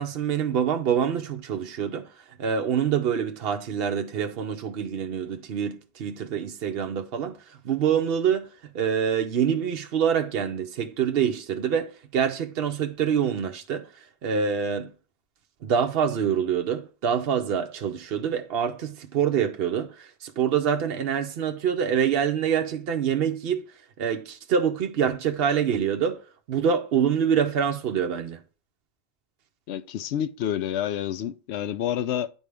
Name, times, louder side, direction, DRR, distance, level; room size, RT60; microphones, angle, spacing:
voice 1, 0.0-8.5 8.7-14.9 15.6-23.6 24.0-28.4, right 7 dB, 65° right, 0.9 m, -26 dB
voice 2, 29.7-32.3, left 10 dB, 80° left, 0.8 m, -28 dB
9.6 x 4.5 x 3.4 m
omnidirectional pair, 1.1 m